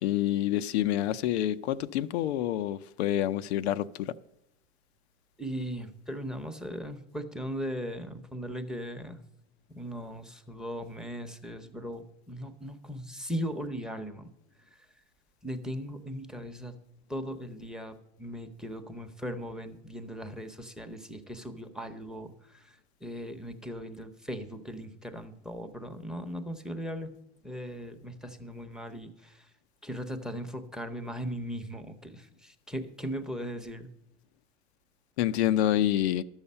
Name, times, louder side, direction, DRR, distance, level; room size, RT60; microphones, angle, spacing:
voice 1, 0.0-4.1 35.2-36.2, left 12 dB, 80° left, 0.6 m, -27 dB
voice 2, 5.4-9.2 9.7-14.3 14.6-15.0 15.4-16.8 17.1-27.1 27.4-29.5 29.8-33.9, equal, ahead, 0.8 m, -38 dB
12.0 x 7.2 x 5.5 m
supercardioid pair, 110°, 32 cm